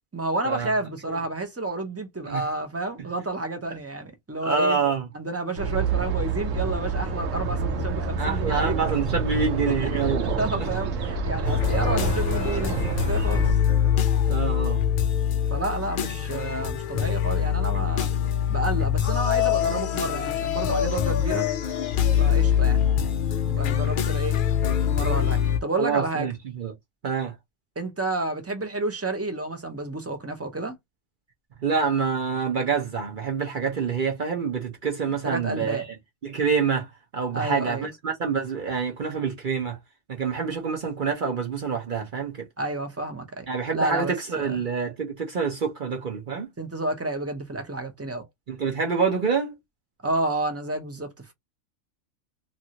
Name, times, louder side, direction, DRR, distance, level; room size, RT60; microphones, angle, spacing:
voice 1, 0.1-4.8 5.1-8.8 9.7-9.9 10.4-13.6 15.5-18.1 18.5-21.4 22.2-22.8 23.4-24.4 24.9-26.3 27.8-30.7 35.2-35.9 37.3-37.9 42.6-43.5 43.7-44.6 46.6-48.3 50.0-51.1, right 2 dB, 20° right, 0.3 m, -30 dB
voice 2, 4.4-5.0 8.2-10.3 10.6-10.7 14.3-14.8 25.8-26.3 26.6-26.7 27.0-27.3 31.6-35.8 36.2-36.9 37.1-39.8 40.1-42.4 43.5-46.5 48.5-49.6, right 5 dB, 45° right, 0.7 m, -26 dB
sound 1, 5.6-13.5, right 4 dB, 65° right, 1.1 m, -27 dB
sound 2, 11.4-25.6, left 9 dB, 70° left, 0.5 m, -24 dB
2.9 x 2.6 x 2.8 m
omnidirectional pair, 1.5 m